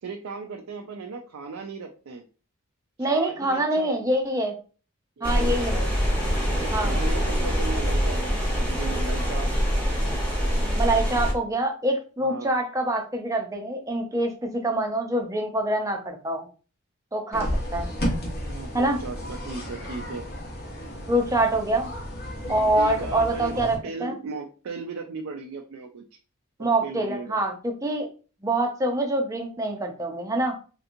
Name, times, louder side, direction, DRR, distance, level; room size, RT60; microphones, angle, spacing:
voice 1, 0.0-2.2 3.0-4.0 5.2-5.7 6.3-9.5 12.2-12.5 18.5-20.3 22.4-26.0 26.6-27.4, right 4 dB, 75° right, 3 dB, 0.4 m, -36 dB
voice 2, 3.0-4.5 5.2-5.8 6.7-7.0 10.8-16.5 17.1-17.9 18.7-19.0 21.1-21.9 22.5-24.1 26.6-28.1 28.4-30.6, right 1 dB, 15° right, 3 dB, 0.5 m, -25 dB
sound 1, 5.2-11.3, equal, 5° left, 0.8 m, -24 dB
sound 2, 17.3-23.8, equal, 45° left, 0.8 m, -33 dB
3.3 x 2.9 x 2.5 m, 0.37 s
head